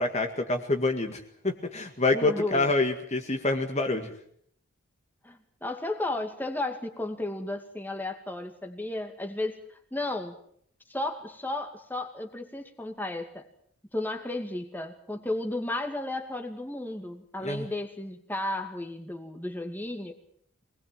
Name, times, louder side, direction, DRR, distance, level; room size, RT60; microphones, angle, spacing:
voice 1, 0.0-4.1 17.4-17.7, left 2 dB, 30° left, 4 dB, 2.0 m, -27 dB
voice 2, 2.1-2.7 5.2-10.4 10.9-13.5 13.9-20.1, left 2 dB, 10° left, 4 dB, 2.3 m, -33 dB
24.5 x 20.0 x 7.5 m, 0.64 s
head